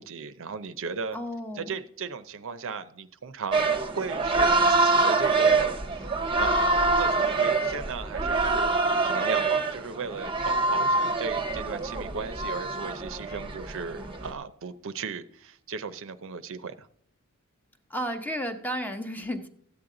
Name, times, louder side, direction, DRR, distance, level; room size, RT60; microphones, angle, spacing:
voice 1, 0.0-1.2 1.6-8.7 9.0-16.9, right 5 dB, 60° right, 11 dB, 0.7 m, -36 dB
voice 2, 1.1-1.7 17.9-19.5, equal, 10° left, 6 dB, 0.9 m, -32 dB
sound 1, 3.5-14.3, right 3 dB, 25° right, 0.9 m, -25 dB
14.0 x 8.7 x 3.8 m, 0.65 s
head